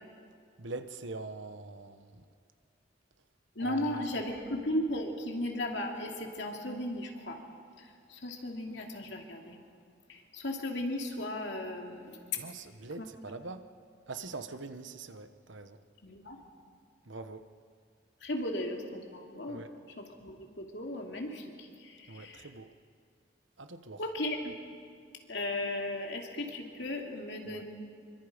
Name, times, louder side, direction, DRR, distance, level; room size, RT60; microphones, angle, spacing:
voice 1, 0.6-2.2 3.6-4.0 12.4-13.7 14.1-15.8 17.1-17.4 19.5-19.7 22.1-22.7 23.6-24.0 27.5-27.6, right 3 dB, 80° right, 9 dB, 1.2 m, -43 dB
voice 2, 3.6-7.4 8.1-9.5 10.1-12.2 13.0-13.1 16.0-16.4 18.2-19.6 20.0-22.5 24.0-24.6 25.3-27.6, left 1 dB, 65° left, 1 dB, 2.8 m, -36 dB
27.0 x 24.0 x 5.1 m, 2.3 s
head